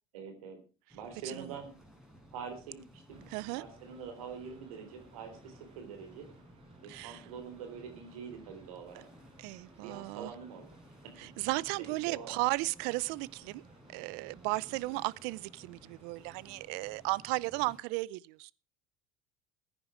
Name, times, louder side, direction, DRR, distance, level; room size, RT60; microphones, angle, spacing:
voice 1, 0.1-0.6 0.9-1.8 2.3-6.3 6.8-9.1 9.8-11.3 11.8-12.3 14.7-15.0, right 6 dB, 90° right, 3.7 m, -45 dB
sound 1, 0.9-17.8, equal, 5° right, 4.6 m, -57 dB
sound 2, 3.1-17.0, right 4 dB, 35° right, 3.5 m, -64 dB
voice 2, 3.3-3.6 6.9-7.2 9.4-10.3 11.2-13.6 13.9-18.5, right 22 dB, 70° right, 0.6 m, -35 dB
15.0 x 9.8 x 5.0 m
supercardioid pair, 85°, 17 cm